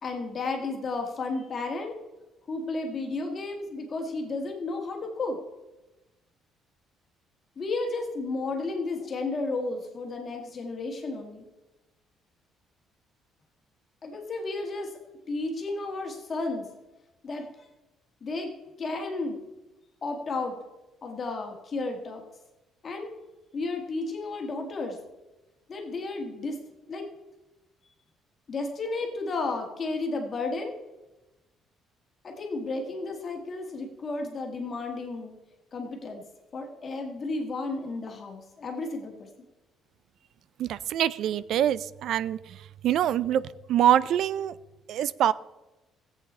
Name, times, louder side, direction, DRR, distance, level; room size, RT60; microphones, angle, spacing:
voice 1, 0.0-1.9 2.5-5.4 7.6-11.4 14.0-14.9 15.3-16.7 17.2-17.5 18.2-18.5 18.8-19.4 20.0-20.5 21.0-22.2 22.8-23.1 23.5-25.0 25.7-26.6 26.9-27.1 28.5-30.8 32.2-35.4 35.7-36.2 36.5-39.3, left 3 dB, 30° left, 2 dB, 1.7 m, -32 dB
voice 2, 40.6-44.5 44.9-45.3, right 11 dB, 55° right, 18 dB, 0.4 m, -25 dB
17.0 x 8.1 x 4.3 m, 1.0 s
cardioid pair, 180°, 0 cm